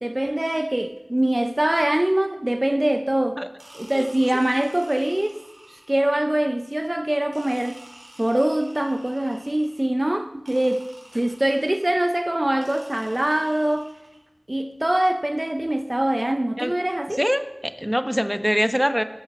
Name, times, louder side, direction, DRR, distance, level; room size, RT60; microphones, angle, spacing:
voice 1, 0.0-3.4 3.7-5.4 5.7-7.8 8.2-10.9 11.1-13.9 14.5-17.2, right 1 dB, 35° right, 0.7 m, -23 dB
sound 1, 3.6-6.1 7.3-9.9 10.4-12.0 12.6-14.2, right 1 dB, 90° right, 4.8 m, -49 dB
voice 2, 17.2-19.0, equal, 5° right, 1.1 m, -23 dB
15.5 x 13.0 x 6.1 m
wide cardioid pair, 45°, 0 cm